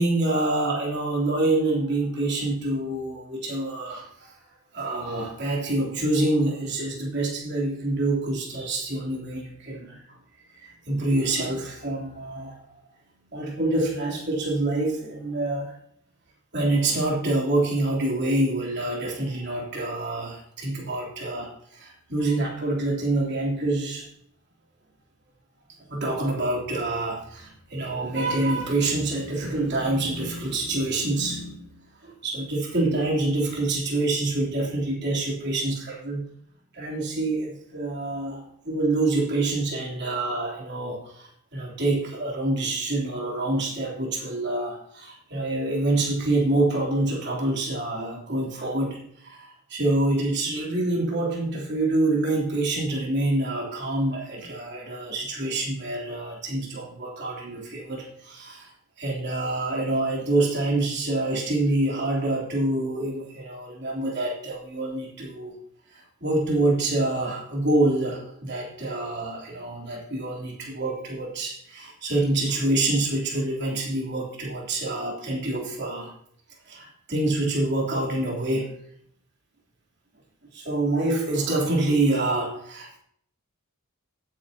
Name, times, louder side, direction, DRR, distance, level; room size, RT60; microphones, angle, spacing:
voice 1, 0.0-4.3 4.7-10.0 10.6-12.6 13.3-15.7 16.5-24.1 25.9-36.2 36.7-58.7 59.0-65.6 65.9-76.1 76.6-78.7 80.5-83.0, right 2 dB, 50° right, -3 dB, 3.4 m, -26 dB
16.5 x 9.2 x 2.9 m, 0.66 s
head